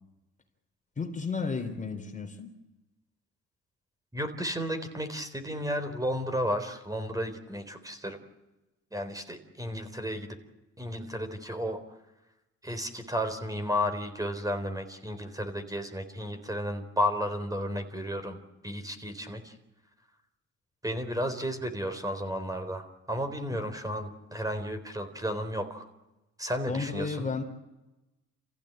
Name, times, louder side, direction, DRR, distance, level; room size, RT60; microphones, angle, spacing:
voice 1, 1.0-2.5 23.5-23.6 26.7-27.4, left 4 dB, 25° left, 6 dB, 3.4 m, -33 dB
voice 2, 4.1-8.2 8.9-10.3 10.8-11.8 12.6-18.4 18.6-19.5 20.8-25.9 26.4-27.3, equal, 10° right, 8 dB, 3.9 m, -33 dB
28.5 x 15.5 x 9.0 m, 1.0 s
cardioid pair, 90°, 30 cm